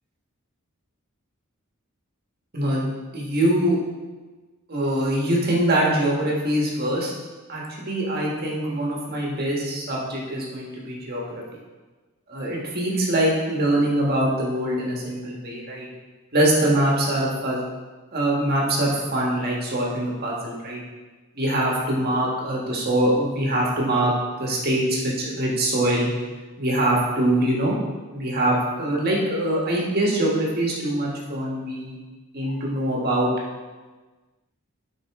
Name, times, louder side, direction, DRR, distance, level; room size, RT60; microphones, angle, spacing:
voice 1, 2.5-2.9 3.1-3.8 4.7-7.1 7.5-11.3 12.3-15.9 16.3-17.6 18.1-20.8 21.3-24.1 24.4-26.1 26.6-27.8 28.1-32.0 32.3-33.3, right 1 dB, 50° right, -3 dB, 1.6 m, -23 dB
7.9 x 5.4 x 3.7 m, 1.3 s
head